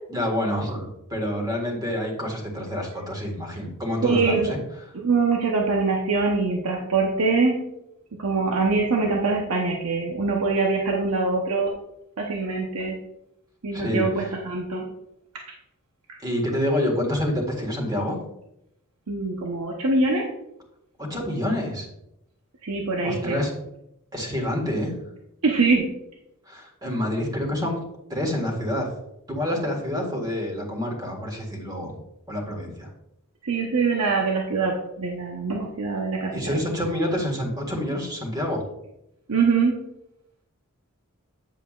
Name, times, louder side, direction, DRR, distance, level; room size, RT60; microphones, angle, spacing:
voice 1, 0.1-4.6 13.7-14.3 16.2-18.2 21.1-21.8 23.0-23.5 24.1-25.0 26.5-27.8 28.1-28.9 29.3-32.0 32.3-32.9 36.3-38.7, left 1 dB, 20° right, 1 dB, 1.7 m, -27 dB
voice 2, 4.0-4.5 4.9-7.6 8.2-11.7 12.2-13.0 13.6-14.9 19.1-20.2 22.6-23.4 25.4-25.9 33.4-36.5 39.3-39.7, right 4 dB, 80° right, 0 dB, 0.9 m, -23 dB
8.9 x 7.4 x 2.4 m, 0.84 s
head